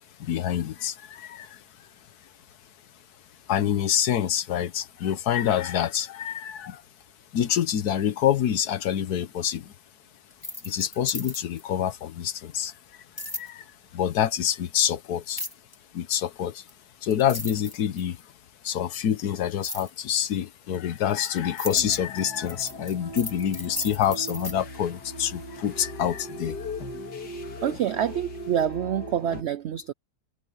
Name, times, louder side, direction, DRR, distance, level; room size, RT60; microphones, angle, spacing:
voice 1, 0.2-1.9 3.5-6.8 7.3-9.7 10.6-12.7 13.2-15.4 15.9-16.6 17.0-18.2 18.6-26.7, left 10 dB, 75° left, 1.4 m, -27 dB
sound 1, 10.3-11.6 13.2-13.5 15.3-15.7 16.7-16.8 17.1-18.2 19.6-19.9 20.7-24.5, left 1 dB, 15° left, 1.6 m, -36 dB
sound 2, 21.7-29.4, left 1 dB, 90° left, 2.6 m, -39 dB
voice 2, 27.6-29.9, right 9 dB, 90° right, 0.5 m, -27 dB
omnidirectional pair, 1.7 m